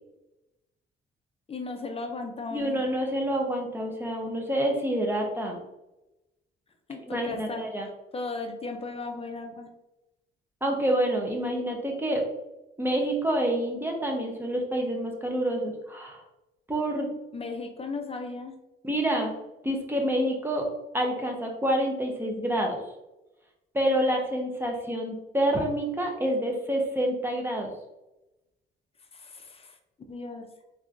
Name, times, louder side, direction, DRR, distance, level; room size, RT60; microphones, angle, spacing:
voice 1, 1.5-2.8 6.9-9.7 17.3-18.5 29.1-29.7 30.1-30.5, left 3 dB, 30° left, 5 dB, 0.5 m, -36 dB
voice 2, 2.5-5.6 7.1-7.9 10.6-12.2 12.8-16.2 16.7-17.1 18.8-19.3 19.6-20.7 20.9-22.8 23.7-27.7, right 1 dB, 10° right, 1 dB, 0.8 m, -27 dB
3.6 x 3.0 x 2.6 m, 0.95 s
cardioid pair, 90°, 20 cm